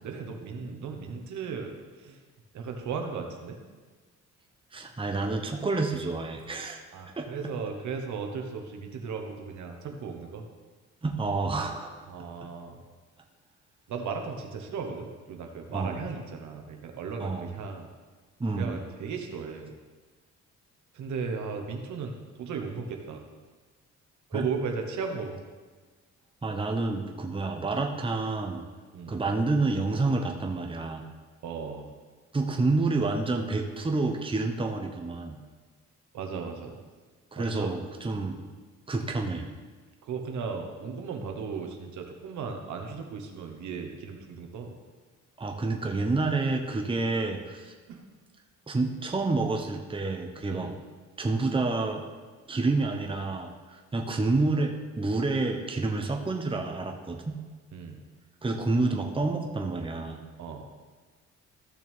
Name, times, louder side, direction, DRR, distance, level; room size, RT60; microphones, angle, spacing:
voice 1, 0.0-2.2 2.5-3.6 6.9-10.4 12.1-12.8 13.9-17.9 18.6-19.7 20.9-23.2 24.3-25.4 28.9-29.2 31.4-31.9 36.1-36.7 37.4-37.7 38.1-38.3 40.0-44.7 47.9-48.0 50.5-50.7 57.7-58.0 60.4-60.6, right 5 dB, 70° right, 3 dB, 1.3 m, -36 dB
voice 2, 4.7-6.8 7.2-7.3 11.0-11.9 15.7-16.0 17.2-17.5 18.4-18.8 24.3-24.4 26.4-28.6 29.1-31.0 32.3-35.4 37.3-38.4 38.9-39.5 45.4-47.7 48.7-50.7 51.2-52.0 52.5-57.4 58.4-60.2, right 3 dB, 15° right, 3 dB, 0.9 m, -28 dB
14.5 x 6.0 x 3.6 m, 1.4 s
cardioid pair, 90°, 30 cm